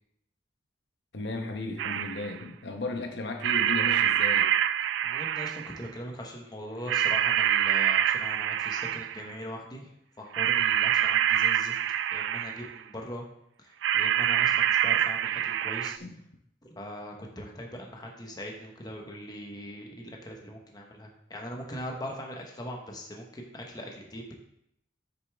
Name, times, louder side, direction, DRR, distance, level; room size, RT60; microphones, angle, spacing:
voice 1, 1.1-4.5 5.6-5.7 16.0-16.2, left 2 dB, 70° left, 4 dB, 1.0 m, -35 dB
sound 1, 1.8-2.4 3.4-5.9 6.9-9.3 10.3-12.8 13.8-16.0, right 10 dB, 80° right, 0.3 m, -26 dB
voice 2, 5.0-9.9 10.2-11.8 12.1-13.2 13.6-15.9 16.6-24.3, equal, 20° left, 0 dB, 1.1 m, -41 dB
8.1 x 6.6 x 3.5 m, 0.77 s
head